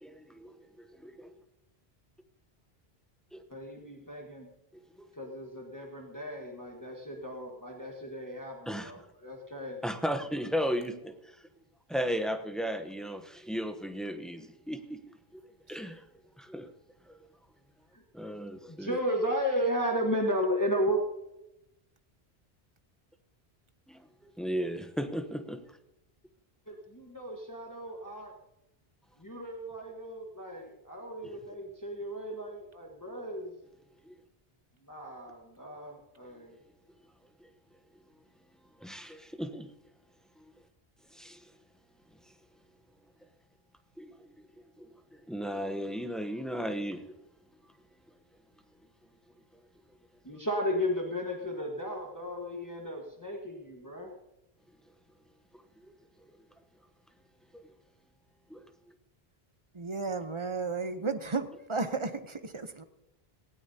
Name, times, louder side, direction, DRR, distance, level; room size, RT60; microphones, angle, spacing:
voice 1, 0.0-1.3 3.3-3.4 5.0-5.1 8.7-9.1 9.8-11.4 11.9-15.0 15.3-15.4 15.7-16.0 16.4-16.7 17.1-17.2 18.1-19.0 23.9-25.6 31.2-31.4 34.1-34.2 38.8-39.7 40.4-40.5 41.1-41.5 44.0-44.1 44.8-47.1 57.5-57.6 58.5-58.7, equal, ahead, 7 dB, 0.8 m, -36 dB
voice 2, 3.5-4.5 5.1-9.8 17.9-18.0 18.7-21.0 26.7-28.3 29.2-33.5 34.8-36.6 50.2-54.1, equal, 20° left, 0 dB, 1.4 m, -34 dB
voice 3, 59.7-62.8, right 4 dB, 30° right, 9 dB, 0.8 m, -33 dB
18.5 x 16.5 x 2.8 m, 0.90 s
omnidirectional pair, 1.0 m